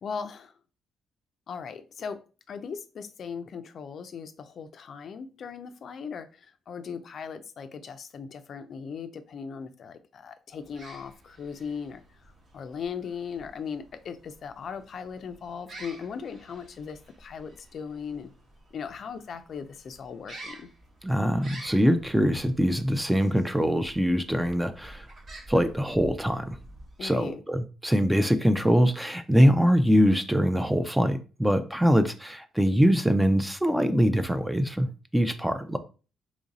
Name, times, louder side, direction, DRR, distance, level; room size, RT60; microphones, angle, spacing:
voice 1, 0.0-0.6 1.5-2.2 2.5-18.3 18.7-20.7 27.0-27.4, left 6 dB, 55° left, 0.4 m, -38 dB
sound 1, 10.6-27.3, right 1 dB, 50° right, 1.2 m, -49 dB
voice 2, 21.0-25.1 25.5-26.6 27.0-35.8, equal, 5° right, 0.4 m, -23 dB
3.0 x 2.6 x 4.0 m
cardioid pair, 90°, 0 cm